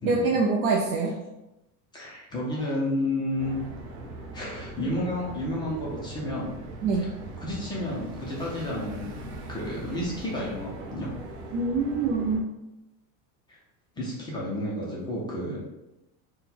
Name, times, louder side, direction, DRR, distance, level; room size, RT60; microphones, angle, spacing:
voice 1, 0.0-1.2 6.8-7.1 11.5-12.5, right 3 dB, 45° right, -2 dB, 0.5 m, -25 dB
voice 2, 1.9-3.6 4.3-6.5 7.0-7.1 7.4-11.1 13.5-13.6 14.0-15.6, left 1 dB, 10° left, -5 dB, 0.4 m, -31 dB
sound 1, 3.4-12.4, right 2 dB, 85° right, 1.0 m, -40 dB
3.8 x 2.2 x 4.2 m, 0.96 s
cardioid pair, 170°, 41 cm